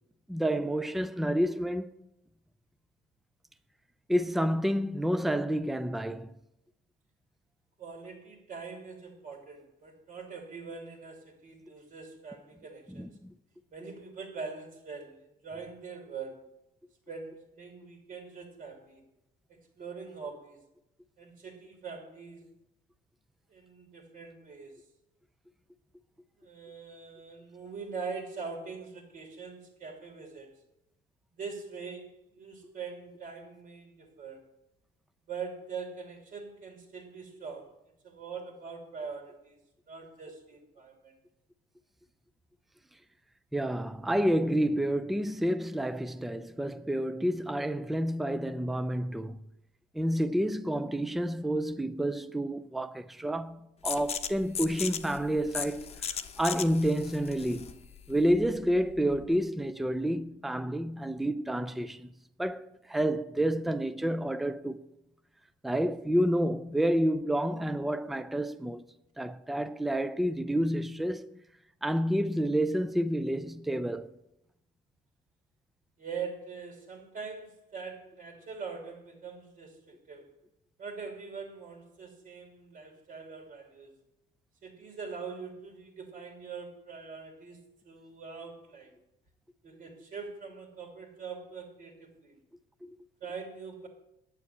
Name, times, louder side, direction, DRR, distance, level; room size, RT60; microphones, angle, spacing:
voice 1, 0.3-1.9 4.1-6.3 13.0-13.3 43.5-49.4 49.9-57.7 58.1-62.1 62.4-64.8 65.6-68.8 69.2-71.4 71.8-74.1 92.8-92.9, equal, ahead, 0.5 m, -29 dB
voice 2, 7.8-13.1 13.7-16.5 17.1-19.0 19.5-20.6 21.2-22.5 23.5-24.8 26.4-30.5 31.3-34.5 35.3-37.7 38.0-39.6 39.9-41.1 76.0-80.3 80.8-83.9 84.6-88.9 89.6-92.4 93.2-93.9, right 5 dB, 55° right, 2.8 m, -43 dB
sound 1, 53.8-59.3, left 7 dB, 40° left, 0.8 m, -38 dB
9.7 x 7.0 x 8.4 m
cardioid pair, 110°, 17 cm